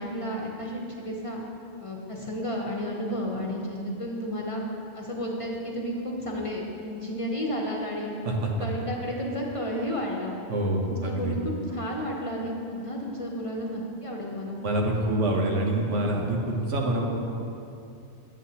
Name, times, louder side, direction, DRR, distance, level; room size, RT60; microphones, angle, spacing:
voice 1, 0.0-1.4 1.8-4.7 4.9-8.1 8.6-10.4 10.8-14.6 15.0-15.1, equal, 35° left, -2 dB, 0.7 m, -32 dB
voice 2, 8.2-8.7 10.5-11.4 14.6-17.1, right 1 dB, 90° right, 0 dB, 1.3 m, -26 dB
9.5 x 7.9 x 2.8 m, 2.6 s
omnidirectional pair, 1.2 m